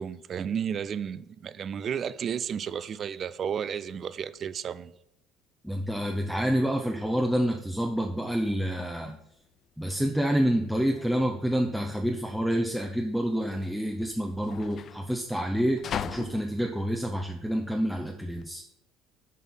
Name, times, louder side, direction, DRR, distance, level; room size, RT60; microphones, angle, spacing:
voice 1, 0.0-4.9, right 8 dB, 45° right, 0.4 m, -32 dB
voice 2, 5.6-9.2 9.8-18.6, equal, ahead, 0.7 m, -28 dB
sound 1, 8.4-18.5, left 8 dB, 45° left, 0.4 m, -42 dB
7.2 x 4.4 x 5.6 m
supercardioid pair, 95°, 0 cm